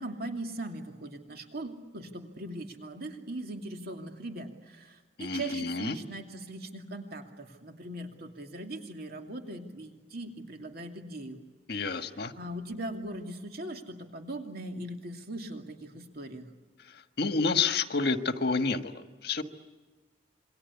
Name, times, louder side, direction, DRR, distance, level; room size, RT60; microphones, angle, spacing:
voice 1, 0.0-11.4 11.8-16.5, right 1 dB, 55° right, 4 dB, 2.7 m, -40 dB
voice 2, 5.2-6.0 11.7-12.3 17.2-19.4, left 4 dB, 60° left, 8 dB, 1.6 m, -29 dB
28.0 x 23.5 x 8.4 m, 1.3 s
head